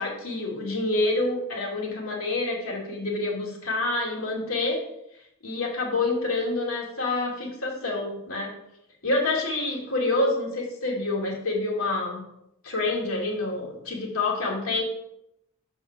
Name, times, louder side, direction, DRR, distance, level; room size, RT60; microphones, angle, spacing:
voice 1, 0.0-4.8 5.4-8.5 9.0-12.2 12.6-14.8, left 2 dB, 75° left, -2 dB, 2.4 m, -27 dB
6.0 x 5.4 x 6.1 m, 0.81 s
head